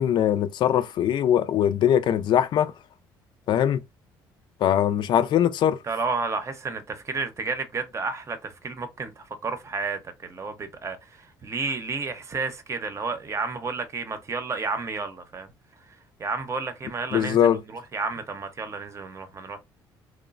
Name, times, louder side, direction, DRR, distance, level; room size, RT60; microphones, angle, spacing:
voice 1, 0.0-2.7 3.5-3.8 4.6-5.8 17.1-17.6, left 10 dB, 60° left, 0.4 m, -21 dB
voice 2, 5.8-15.5 15.9-19.6, right 4 dB, 30° right, 0.7 m, -31 dB
3.0 x 2.1 x 2.4 m
supercardioid pair, 85°, 9 cm